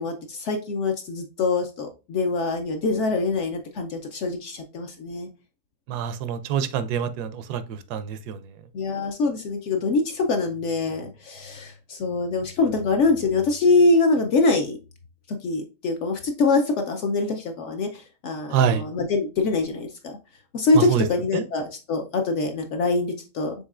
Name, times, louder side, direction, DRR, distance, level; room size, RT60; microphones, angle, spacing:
voice 1, 0.0-5.3 8.7-14.8 15.3-20.2 20.5-23.5, left 3 dB, 65° left, 0.7 m, -24 dB
voice 2, 5.9-8.4 18.5-18.9 20.7-21.1 21.3-21.4, right 7 dB, 85° right, 1.1 m, -25 dB
5.5 x 3.5 x 2.4 m
omnidirectional pair, 1.6 m